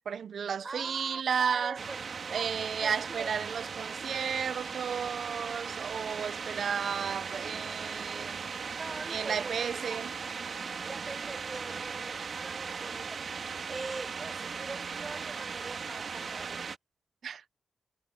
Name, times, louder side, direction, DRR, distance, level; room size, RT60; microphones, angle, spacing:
voice 1, 0.1-1.8 2.3-8.5 9.1-10.1 17.2-17.4, right 7 dB, 80° right, 0.7 m, -33 dB
voice 2, 0.6-2.0 2.3-2.5 2.8-3.3 8.8-10.1 10.9-16.6, right 3 dB, 30° right, 7.8 m, -43 dB
sound 1, 1.8-16.8, right 5 dB, 60° right, 2.2 m, -38 dB
wide cardioid pair, 155°, 0 cm